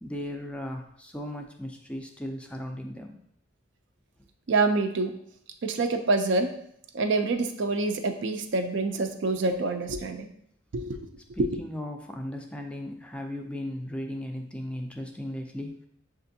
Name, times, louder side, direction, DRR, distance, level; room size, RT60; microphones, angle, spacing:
voice 1, 0.0-3.2 11.3-15.9, left 1 dB, 5° left, 2 dB, 0.3 m, -36 dB
voice 2, 4.5-5.1 5.6-6.5 6.9-10.3 10.7-11.0 11.4-11.5, right 3 dB, 65° right, 7 dB, 0.4 m, -26 dB
6.6 x 2.5 x 2.7 m, 0.70 s
head